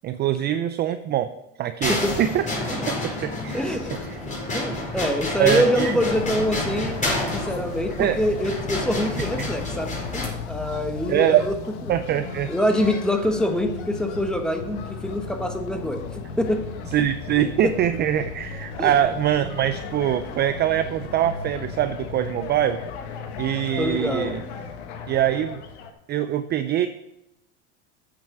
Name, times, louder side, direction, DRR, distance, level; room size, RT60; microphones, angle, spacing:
voice 1, 0.0-1.3 1.6-2.5 2.9-3.8 5.4-6.0 7.2-7.3 8.0-8.2 9.2-9.5 11.1-11.4 11.9-12.5 16.9-22.8 23.4-24.4 25.1-25.6 26.1-26.9, right 11 dB, 30° right, 10 dB, 0.5 m, -23 dB
sound 1, 1.8-10.3, left 2 dB, 20° left, 4.5 m, -29 dB
voice 2, 3.5-3.9 4.5-11.5 12.1-12.2 12.5-16.7 17.3-17.7 18.8-18.9 23.8-24.4, equal, ahead, 5 dB, 1.3 m, -25 dB
sound 2, 6.1-25.9, left 5 dB, 70° left, 1.7 m, -35 dB
8.6 x 7.5 x 5.9 m, 0.87 s
supercardioid pair, 110°, 35 cm